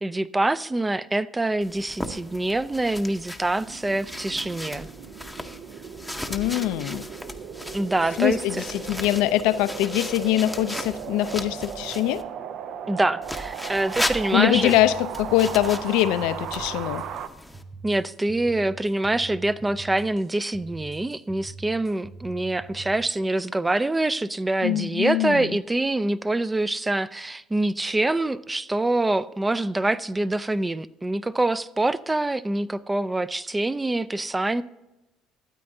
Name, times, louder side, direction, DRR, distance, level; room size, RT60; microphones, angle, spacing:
voice 1, 0.0-4.9 7.7-8.6 12.9-14.7 17.8-34.6, right 2 dB, 15° right, 0.3 m, -25 dB
sound 1, 1.6-12.2 13.2-17.6, left 1 dB, ahead, 0.7 m, -37 dB
sound 2, 3.7-17.3, right 8 dB, 65° right, 0.5 m, -37 dB
voice 2, 6.3-7.0 8.2-12.2 14.3-17.0 24.6-25.5, left 14 dB, 85° left, 0.4 m, -23 dB
sound 3, 14.5-22.9, right 3 dB, 45° right, 3.1 m, -43 dB
13.0 x 8.5 x 2.7 m
supercardioid pair, 90°, 0 cm